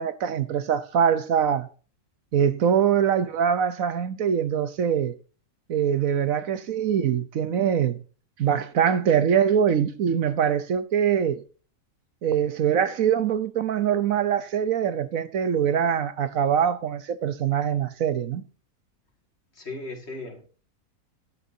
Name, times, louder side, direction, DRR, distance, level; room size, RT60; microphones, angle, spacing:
voice 1, 0.0-1.7 2.3-5.2 5.7-8.0 8.4-11.4 12.2-18.4, right 8 dB, 70° right, 1.2 m, -23 dB
voice 2, 19.5-20.5, left 2 dB, 45° left, 2.4 m, -36 dB
14.0 x 11.0 x 2.7 m
omnidirectional pair, 1.6 m